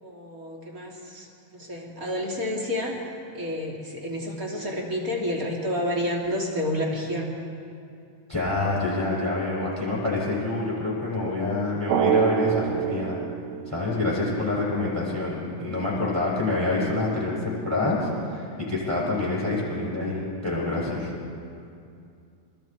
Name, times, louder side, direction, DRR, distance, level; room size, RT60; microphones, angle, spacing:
voice 1, 0.0-3.1 3.3-7.3, left 1 dB, 30° right, -1 dB, 1.7 m, -30 dB
voice 2, 8.3-13.2 13.7-21.1, left 2 dB, 5° right, -6 dB, 6.8 m, -27 dB
Drum, 11.9-14.5, right 11 dB, 80° right, 2.3 m, -26 dB
26.5 x 21.0 x 4.6 m, 2.5 s
omnidirectional pair, 5.2 m